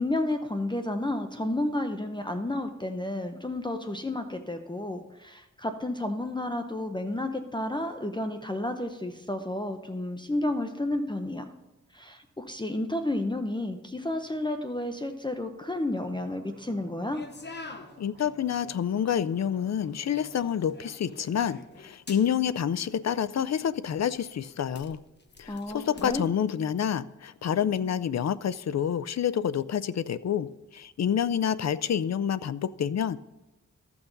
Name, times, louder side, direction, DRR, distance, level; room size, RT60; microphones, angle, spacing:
voice 1, 0.0-11.5 11.9-17.2 25.5-26.2, left 1 dB, 15° left, 6 dB, 0.6 m, -31 dB
sound 1, 15.7-20.8 21.1-21.7, right 2 dB, 50° right, 1.5 m, -55 dB
sound 2, 17.1-26.1, left 3 dB, 35° left, 0.9 m, -49 dB
voice 2, 18.0-25.0 25.4-30.5 30.7-33.2, left 8 dB, 60° left, 16 dB, 0.5 m, -28 dB
14.5 x 6.0 x 3.9 m, 1.1 s
wide cardioid pair, 85°, 30 cm